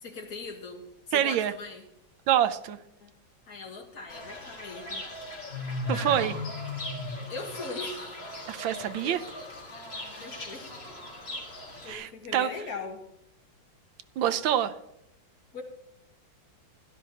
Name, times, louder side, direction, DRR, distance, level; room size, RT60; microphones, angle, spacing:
voice 1, 0.0-1.8 3.0-3.1 3.5-5.0 5.8-6.3 7.3-8.1 9.0-9.2 10.2-10.8 11.8-13.0 15.5-15.6, left 4 dB, 50° left, 2 dB, 1.8 m, -40 dB
voice 2, 1.1-1.5 2.3-2.8 5.9-6.3 8.5-9.2 11.9-12.5 14.2-14.7, right 10 dB, 80° right, 11 dB, 1.4 m, -26 dB
Fowl / Bird, 4.1-11.9, left 2 dB, 30° left, 2.2 m, -38 dB
16.0 x 12.0 x 2.9 m, 0.83 s
omnidirectional pair, 2.1 m